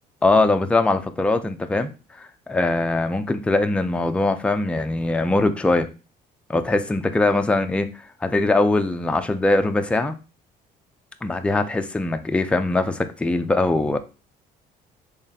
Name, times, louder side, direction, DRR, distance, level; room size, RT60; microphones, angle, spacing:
voice 1, 0.2-1.9 2.2-5.9 6.5-7.9 8.2-10.1 11.2-14.0, left 2 dB, 5° left, 7 dB, 0.3 m, -21 dB
3.9 x 3.1 x 2.7 m, 0.32 s
cardioid pair, 110°, 17 cm